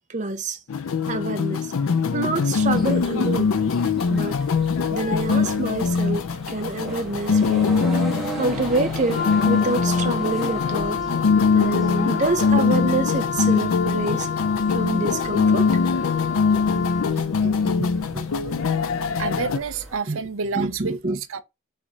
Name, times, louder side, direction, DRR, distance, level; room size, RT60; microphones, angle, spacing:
voice 1, 0.1-0.6 1.1-1.7 2.1-3.5 4.1-4.4 4.9-6.2 6.5-7.7 8.3-11.0 11.5-14.3 14.7-15.7 16.7-16.9 17.2-18.3 20.1-20.2 20.5-21.4, right 3 dB, 35° right, 0.6 m, -27 dB
sound 1, 0.7-19.6, left 5 dB, 85° left, 0.5 m, -22 dB
sound 2, 2.6-20.0, right 1 dB, ahead, 1.2 m, -39 dB
Wind instrument woodwind instrument, 9.1-17.2, left 6 dB, 35° left, 0.5 m, -29 dB
voice 2, 19.2-21.4, right 5 dB, 80° right, 0.6 m, -29 dB
4.1 x 3.3 x 3.5 m
head